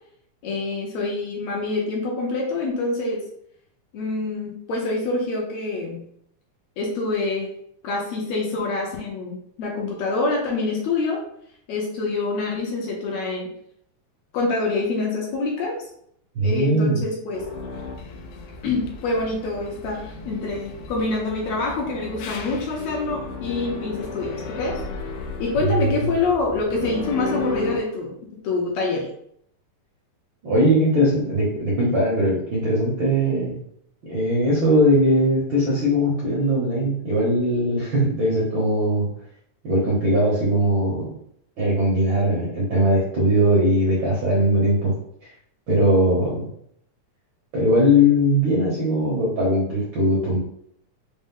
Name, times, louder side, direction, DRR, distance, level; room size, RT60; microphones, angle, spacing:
voice 1, 0.4-3.2 3.9-6.1 6.8-7.5 7.8-11.2 11.7-13.5 14.3-15.8 16.4-17.4 18.6-24.8 25.4-29.1, left 3 dB, 70° left, -1 dB, 1.7 m, -26 dB
voice 2, 16.3-17.0 25.6-26.1 30.4-33.6 34.1-39.1 39.6-41.1 41.6-44.9 45.7-46.5 47.5-50.4, equal, 65° right, -6 dB, 1.2 m, -20 dB
sound 1, 17.3-27.8, left 4 dB, 90° left, 2.1 m, -34 dB
5.3 x 2.0 x 3.6 m, 0.69 s
omnidirectional pair, 3.5 m